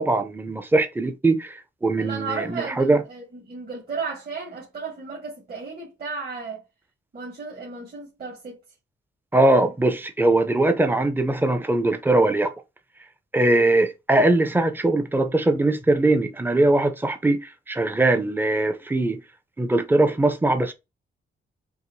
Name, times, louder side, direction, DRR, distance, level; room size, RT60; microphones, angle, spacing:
voice 1, 0.0-3.0 9.3-12.5 13.3-19.2 19.6-20.7, right 2 dB, 10° right, 0.6 m, -21 dB
voice 2, 2.0-6.6 7.1-8.6, right 4 dB, 50° right, 2.0 m, -34 dB
4.8 x 2.6 x 2.7 m
cardioid pair, 85°, 21 cm